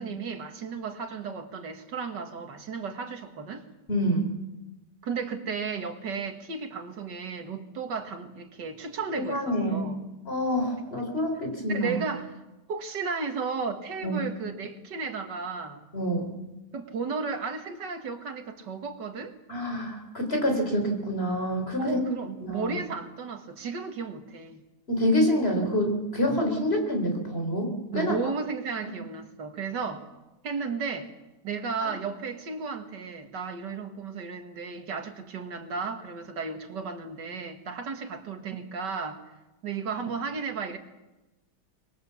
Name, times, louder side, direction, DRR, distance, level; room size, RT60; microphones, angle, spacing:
voice 1, 0.0-3.7 5.0-10.0 11.7-12.3 12.7-15.8 16.7-19.4 21.8-24.6 27.9-30.0 30.4-31.1 31.4-39.2 39.6-40.8, right 5 dB, 90° right, 6 dB, 2.4 m, -34 dB
voice 2, 3.9-4.3 9.1-9.9 10.3-11.9 14.0-14.2 15.9-16.3 19.5-22.0 22.4-22.7 24.9-28.2 31.8-31.9, equal, 35° left, 3 dB, 4.4 m, -27 dB
24.5 x 22.0 x 7.2 m, 1.0 s
omnidirectional pair, 1.8 m